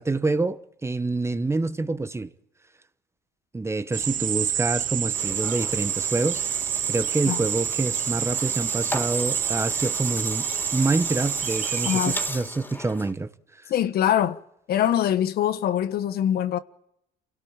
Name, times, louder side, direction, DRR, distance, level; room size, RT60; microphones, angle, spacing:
voice 1, 0.0-2.3 3.5-6.4 6.9-13.3, right 3 dB, 15° right, 1.1 m, -27 dB
sound 1, 3.9-12.3, right 10 dB, 50° right, 1.1 m, -28 dB
sound 2, 5.1-13.1, left 1 dB, 10° left, 3.5 m, -36 dB
voice 2, 11.8-12.2 13.7-14.4 14.7-16.6, left 10 dB, 65° left, 1.3 m, -23 dB
28.5 x 17.5 x 8.8 m
cardioid pair, 110°, 17 cm